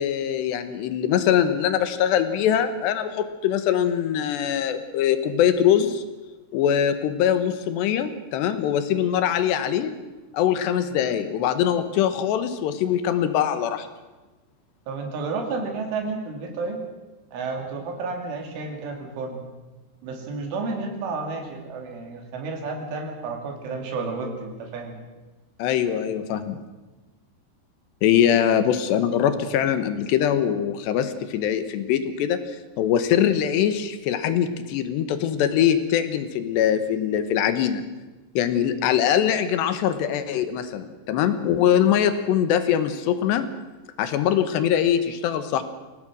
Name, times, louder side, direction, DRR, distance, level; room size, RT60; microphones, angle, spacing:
voice 1, 0.0-6.0 6.5-9.9 10.3-13.9 25.6-26.6 28.0-37.8 38.4-43.5 44.0-45.6, left 9 dB, 70° left, 10 dB, 2.9 m, -22 dB
voice 2, 14.9-16.8 17.3-19.4 20.0-25.0, right 4 dB, 70° right, 3 dB, 5.0 m, -31 dB
24.5 x 17.5 x 6.2 m, 1.2 s
omnidirectional pair, 5.8 m